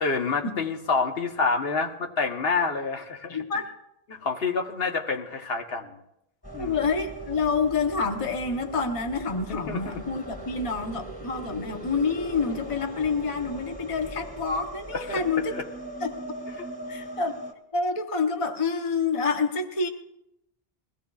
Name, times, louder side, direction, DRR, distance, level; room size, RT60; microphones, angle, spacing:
voice 1, 0.0-3.4 4.1-6.0 6.5-6.8 9.5-10.0 14.9-15.2 15.5-15.6 16.6-16.7, left 4 dB, 70° left, 3 dB, 1.2 m, -28 dB
voice 2, 3.3-3.6 6.6-15.6 16.0-16.1 16.9-17.4 17.7-19.9, left 4 dB, 35° left, 5 dB, 1.0 m, -28 dB
sound 1, 6.4-17.5, right 1 dB, 10° left, 1.8 m, -40 dB
21.5 x 16.0 x 2.4 m, 0.81 s
omnidirectional pair, 1.1 m